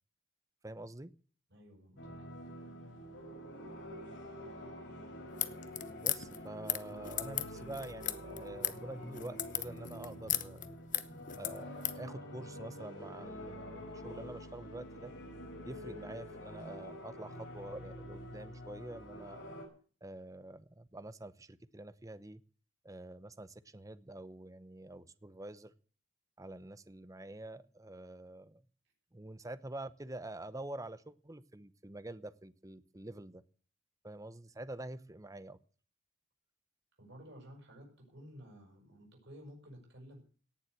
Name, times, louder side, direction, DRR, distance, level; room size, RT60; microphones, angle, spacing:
voice 1, 0.6-1.1 6.0-10.6 11.3-15.1 15.6-19.5 20.0-22.4 22.8-25.7 26.4-28.6 29.1-33.4 34.0-35.6, right 1 dB, 15° right, 14 dB, 0.8 m, -47 dB
voice 2, 1.5-2.1 37.0-40.2, equal, 60° right, 0 dB, 6.4 m, -53 dB
sound 1, 2.0-19.7, equal, 65° left, 4.6 m, -47 dB
sound 2, 5.3-12.0, left 12 dB, 40° left, 0.9 m, -37 dB
18.0 x 7.3 x 8.1 m, 0.42 s
head